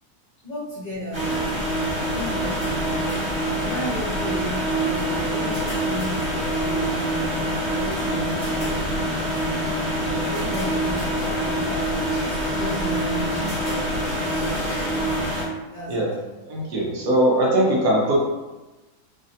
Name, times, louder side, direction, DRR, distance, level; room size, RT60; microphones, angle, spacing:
voice 1, 0.4-1.5 2.0-9.0 9.9-15.0 15.7-16.1, left 1 dB, 35° left, -9 dB, 1.0 m, -35 dB
sound 1, 1.1-15.4, right 1 dB, 40° right, 1.4 m, -25 dB
voice 2, 16.4-18.2, right 1 dB, 70° right, -4 dB, 1.2 m, -20 dB
3.2 x 2.6 x 2.6 m, 1.1 s
omnidirectional pair, 1.7 m